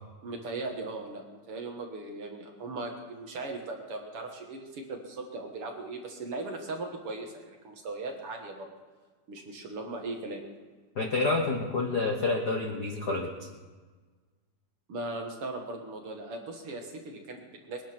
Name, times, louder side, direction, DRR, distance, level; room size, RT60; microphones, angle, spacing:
voice 1, 0.2-8.7 9.3-10.4 14.9-17.8, right 2 dB, 50° right, 2 dB, 2.2 m, -38 dB
voice 2, 10.9-13.3, left 3 dB, 55° left, 2 dB, 1.2 m, -28 dB
21.0 x 10.5 x 6.0 m, 1.4 s
omnidirectional pair, 3.6 m